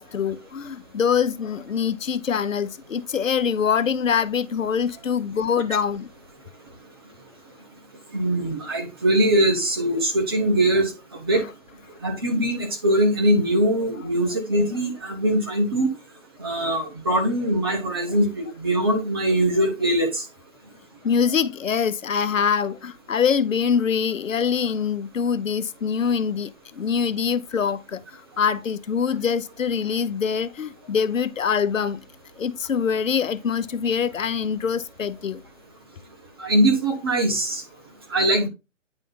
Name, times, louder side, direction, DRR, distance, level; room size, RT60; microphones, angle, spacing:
voice 1, 0.0-6.1 21.0-32.0 32.4-35.4, left 7 dB, 85° left, 0.9 m, -24 dB
voice 2, 8.1-10.9 11.2-11.4 12.0-15.9 16.4-20.2 36.4-37.6 38.1-38.5, right 1 dB, 20° right, 1.2 m, -22 dB
9.8 x 3.6 x 3.9 m
hypercardioid pair, 175°, 38 cm